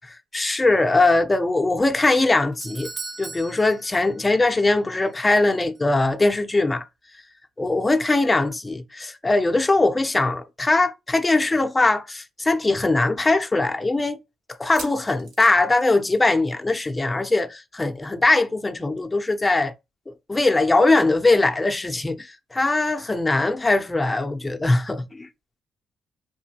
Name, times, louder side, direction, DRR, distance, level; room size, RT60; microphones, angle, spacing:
voice 1, 0.3-2.9 3.2-6.9 7.6-14.2 14.6-19.7 20.1-25.3, left 2 dB, 20° left, 0.6 m, -21 dB
Doorbell, 2.1-4.6 4.9-5.0 5.8-5.9, right 4 dB, 35° right, 0.4 m, -39 dB
sound 1, 11.9-12.0 12.3-12.4 13.0-13.1 14.5-16.7 16.9-17.2 17.4-17.5 19.0-19.1, right 3 dB, 75° right, 1.7 m, -43 dB
4.7 x 2.6 x 2.8 m
cardioid pair, 90°, 0 cm